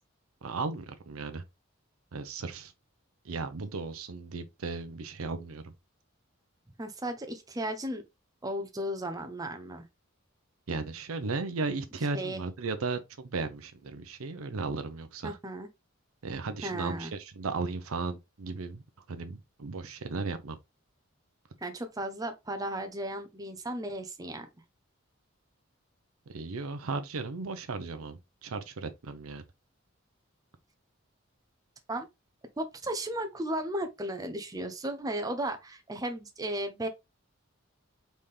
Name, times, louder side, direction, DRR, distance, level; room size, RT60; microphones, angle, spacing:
voice 1, 0.4-1.4 2.1-2.7 3.3-5.6 10.7-15.4 16.2-18.8 19.1-20.6 26.3-29.4, right 4 dB, 90° right, 0.6 m, -35 dB
voice 2, 6.8-8.0 8.4-9.8 12.1-12.4 15.2-15.7 16.6-17.1 21.6-24.5 31.9-32.1 32.6-36.9, right 1 dB, 15° right, 0.6 m, -35 dB
4.1 x 3.6 x 3.3 m
head